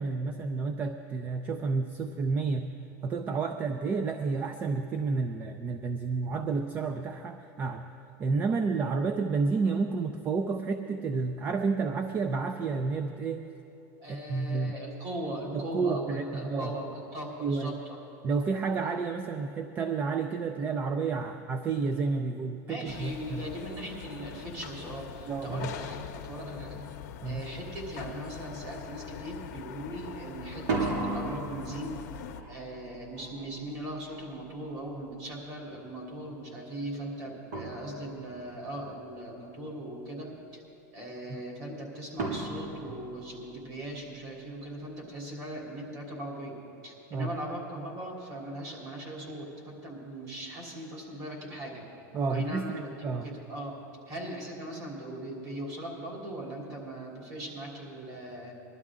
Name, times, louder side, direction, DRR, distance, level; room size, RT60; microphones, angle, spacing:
voice 1, 0.0-2.7 3.0-7.9 8.2-13.5 14.1-14.7 15.5-16.7 17.4-17.8 18.2-23.5 25.3-25.7 27.2-27.4 41.3-41.4 47.1-47.3 52.1-53.3, right 4 dB, 20° right, 7 dB, 0.4 m, -30 dB
voice 2, 14.0-18.0 22.7-26.8 27.2-32.0 32.5-40.6 40.9-51.8 52.3-52.9 53.2-53.8 54.1-58.5, right 1 dB, 35° right, -2 dB, 3.3 m, -39 dB
sound 1, 22.9-32.4, left 9 dB, 70° left, 0.7 m, -43 dB
sound 2, 28.5-29.0 30.5-35.3 37.0-37.1 37.5-38.4 42.2-43.9, right 3 dB, 85° right, 3.4 m, -37 dB
21.5 x 12.0 x 3.7 m, 2.7 s
supercardioid pair, 170°, 9 cm